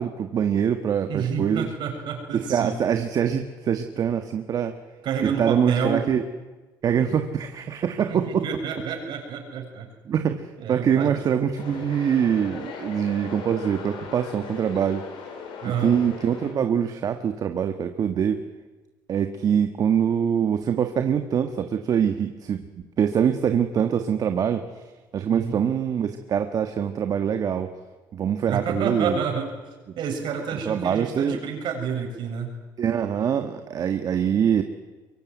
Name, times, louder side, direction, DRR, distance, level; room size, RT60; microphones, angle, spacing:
voice 1, 0.0-1.7 2.3-4.8 5.2-6.2 6.8-8.6 10.1-15.0 15.6-18.4 19.1-22.6 23.0-24.6 25.1-27.7 28.1-29.2 30.6-31.4 32.8-34.6, right 8 dB, 45° right, 7 dB, 1.6 m, -24 dB
voice 2, 1.1-2.8 5.0-6.1 8.1-9.9 10.6-11.2 15.6-16.0 25.3-25.6 28.4-29.5 30.0-32.5, right 6 dB, 60° right, 3 dB, 7.3 m, -29 dB
sound 1, 11.5-16.5, left 5 dB, 70° left, 6.1 m, -39 dB
24.0 x 23.0 x 9.5 m, 1.2 s
cardioid pair, 115°, 9 cm